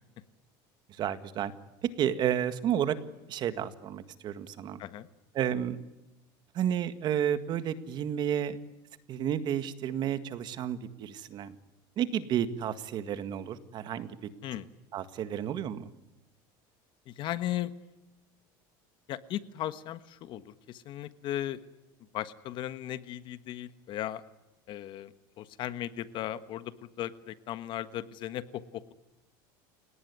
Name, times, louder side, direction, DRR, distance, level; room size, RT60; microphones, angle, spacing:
voice 1, 0.9-1.5 1.8-3.0 3.3-4.8 5.3-5.8 6.5-8.6 9.1-11.6 12.0-14.2 14.9-15.9, right 9 dB, 45° right, 11 dB, 1.8 m, -31 dB
voice 2, 17.1-17.7 19.1-21.6 22.1-24.2 24.7-28.9, left 12 dB, 50° left, 13 dB, 1.4 m, -37 dB
29.5 x 18.5 x 9.6 m, 1.0 s
cardioid pair, 135°, 11 cm